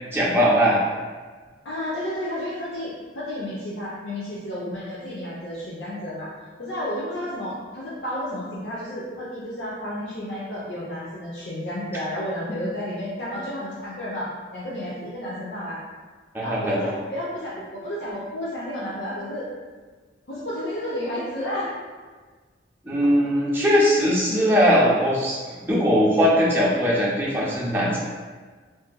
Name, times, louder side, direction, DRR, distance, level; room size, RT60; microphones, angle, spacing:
voice 1, 0.1-0.8 16.3-16.8 22.8-25.4 25.7-28.0, equal, 10° right, -6 dB, 0.6 m, -20 dB
voice 2, 1.6-6.3 6.6-15.8 16.4-19.5 20.3-21.7 24.4-24.6, left 1 dB, 75° left, -8 dB, 0.6 m, -31 dB
3.9 x 2.5 x 2.2 m, 1.4 s
head